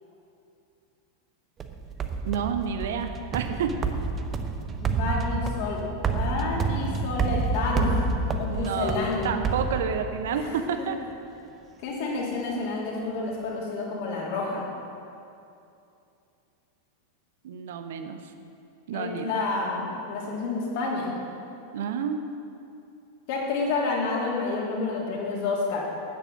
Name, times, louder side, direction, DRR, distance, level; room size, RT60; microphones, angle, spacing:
sound 1, 1.6-10.4, right 4 dB, 25° right, 0.8 m, -29 dB
voice 1, 2.2-3.7 8.5-11.0 17.4-18.3 18.9-19.4 21.7-22.2, right 7 dB, 55° right, 7 dB, 0.8 m, -30 dB
voice 2, 4.8-8.1 8.4-9.3 10.3-10.5 10.8-10.9 11.8-14.6 18.9-21.1 23.3-25.8, left 3 dB, 50° left, -3 dB, 2.7 m, -29 dB
11.5 x 9.2 x 5.9 m, 2.7 s
figure-of-eight pair, 90°, 0 cm